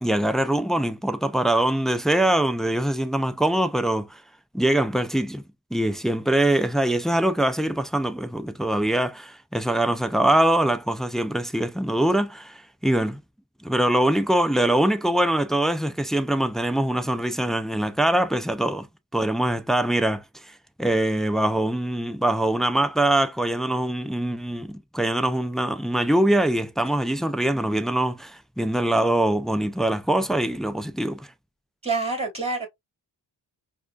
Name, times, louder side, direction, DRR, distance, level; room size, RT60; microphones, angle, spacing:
voice 1, 0.0-4.2 4.5-5.4 5.7-13.2 13.6-18.9 19.1-20.2 20.8-31.3, right 1 dB, ahead, 0.3 m, -23 dB
voice 2, 31.8-32.7, right 3 dB, 15° right, 2.9 m, -26 dB
4.8 x 2.4 x 2.3 m
cardioid pair, 65°, 43 cm